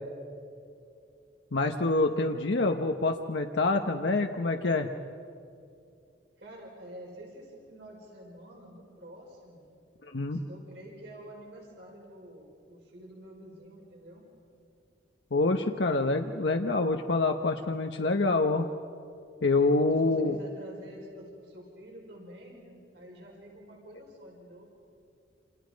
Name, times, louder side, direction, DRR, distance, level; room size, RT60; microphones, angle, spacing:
voice 1, 1.5-4.9 10.1-10.4 15.3-18.7 19.4-20.4, left 3 dB, 70° left, 4 dB, 1.0 m, -26 dB
voice 2, 6.4-9.6 10.3-14.2 19.9-24.7, equal, 65° right, -1 dB, 5.5 m, -48 dB
28.0 x 27.5 x 5.2 m, 2.5 s
head